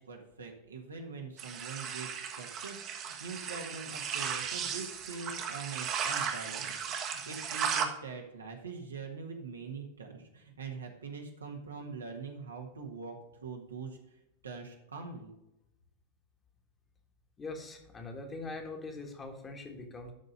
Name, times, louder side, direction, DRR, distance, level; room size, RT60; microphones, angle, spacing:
voice 1, 0.0-13.2 13.4-14.0 14.4-15.3, right 4 dB, 75° right, 2 dB, 1.6 m, -43 dB
sound 1, 1.4-7.9, right 7 dB, 35° right, 1.2 m, -36 dB
voice 2, 17.4-20.1, left 3 dB, 20° left, 3 dB, 1.6 m, -42 dB
12.0 x 4.0 x 5.3 m, 0.89 s
figure-of-eight pair, 90°, 0 cm